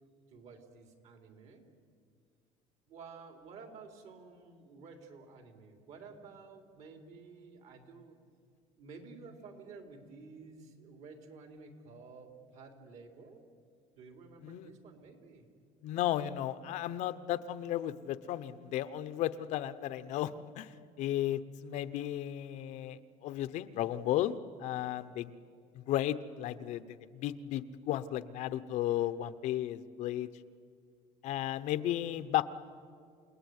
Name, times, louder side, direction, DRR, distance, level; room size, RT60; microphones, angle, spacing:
voice 1, 0.3-1.6 2.9-8.2 8.8-13.4 14.0-15.5, right 4 dB, 60° right, 4 dB, 3.8 m, -52 dB
voice 2, 15.8-20.7 21.0-24.3 24.6-25.3 25.7-30.3 31.2-32.4, left 12 dB, 65° left, 11 dB, 1.0 m, -34 dB
29.0 x 18.5 x 9.6 m, 2.2 s
cardioid pair, 135°, 13 cm